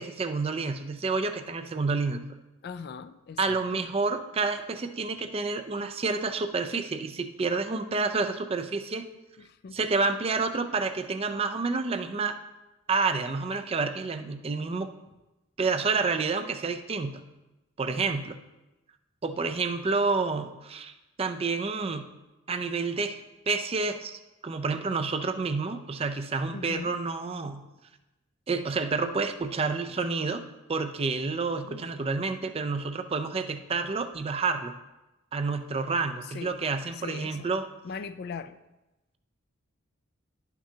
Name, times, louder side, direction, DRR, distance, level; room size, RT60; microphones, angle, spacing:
voice 1, 0.0-2.2 3.4-9.1 9.7-12.4 12.9-14.9 15.6-17.2 17.8-18.4 19.2-22.1 22.5-23.2 23.5-27.6 28.5-30.4 30.7-34.7 35.3-37.7, right 4 dB, 30° right, 8 dB, 0.4 m, -29 dB
voice 2, 2.6-3.8 9.4-9.8 14.2-14.4 17.9-18.2 26.5-27.0 31.6-31.9 36.2-36.6 37.0-37.5 37.8-38.6, left 5 dB, 50° left, 12 dB, 0.4 m, -41 dB
11.0 x 6.0 x 2.8 m, 1.0 s
head